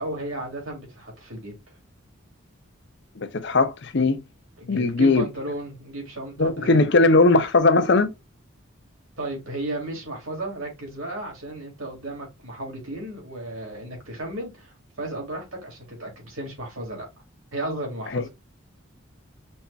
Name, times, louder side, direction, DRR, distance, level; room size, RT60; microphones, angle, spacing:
voice 1, 0.0-1.5 4.6-6.9 9.2-17.1 17.5-18.3, right 1 dB, 90° right, 2.7 m, -34 dB
voice 2, 3.2-4.2 4.7-5.2 6.4-8.1 18.1-18.3, left 3 dB, 55° left, 0.7 m, -19 dB
5.4 x 3.4 x 2.4 m
head